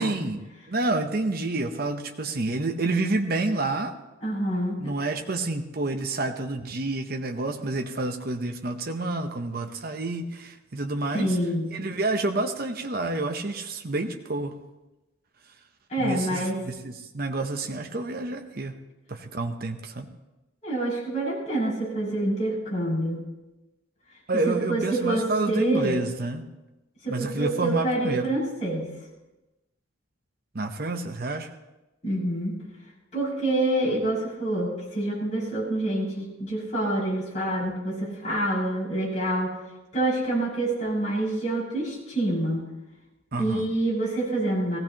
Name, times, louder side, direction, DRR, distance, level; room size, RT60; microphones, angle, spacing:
voice 1, 0.0-3.9 4.8-11.4 11.7-14.6 16.0-18.7 19.1-20.1 24.3-26.4 27.1-28.3 30.5-31.5 43.3-43.7, right 2 dB, 45° right, 4 dB, 0.8 m, -29 dB
voice 2, 4.2-4.8 11.1-11.7 15.9-16.6 20.6-23.2 24.4-26.0 27.0-28.9 32.0-32.6 33.1-39.6 39.9-42.6 43.4-44.8, right 1 dB, 35° left, -6 dB, 6.2 m, -27 dB
18.0 x 15.5 x 2.9 m, 1.0 s
head